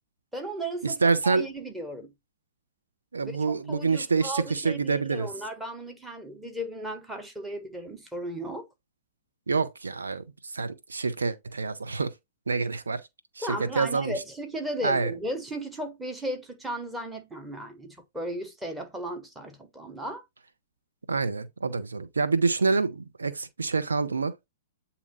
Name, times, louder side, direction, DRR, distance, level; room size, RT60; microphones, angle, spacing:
voice 1, 0.3-2.1 3.2-3.4 3.7-8.7 13.4-20.2, right 1 dB, 10° right, 1.3 m, -35 dB
voice 2, 0.8-1.5 3.1-5.3 9.5-12.1 12.5-13.0 13.4-14.1 14.8-15.1 21.1-24.5, right 4 dB, 80° right, 0.7 m, -27 dB
8.5 x 2.9 x 3.9 m
figure-of-eight pair, 115°, 0 cm